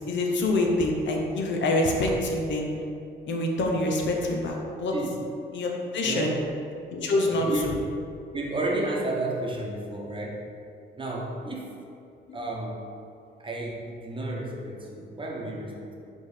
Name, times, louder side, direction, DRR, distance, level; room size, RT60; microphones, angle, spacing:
voice 1, 0.1-2.7 3.3-5.0 5.5-6.3 6.9-7.5 12.3-12.4, left 2 dB, 70° left, 0 dB, 0.9 m, -26 dB
voice 2, 6.0-6.5 7.2-7.7 8.3-10.4 11.0-11.8 12.3-12.9 13.4-16.1, right 2 dB, 25° right, -1 dB, 1.0 m, -32 dB
5.2 x 3.7 x 5.0 m, 2.5 s
cardioid pair, 90°, 20 cm